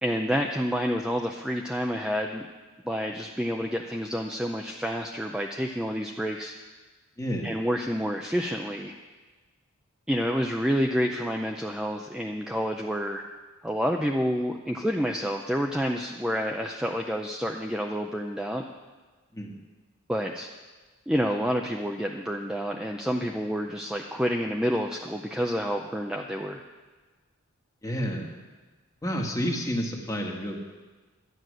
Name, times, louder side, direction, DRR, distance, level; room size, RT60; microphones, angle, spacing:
voice 1, 0.0-2.5 2.8-6.5 7.4-8.9 10.1-13.2 13.6-18.6 20.1-20.5 21.1-26.6, equal, 5° right, 2 dB, 0.4 m, -28 dB
voice 2, 7.2-7.5 19.3-19.6 27.8-28.4 29.0-30.6, equal, 15° left, 1 dB, 1.4 m, -30 dB
12.0 x 9.2 x 6.4 m, 1.3 s
head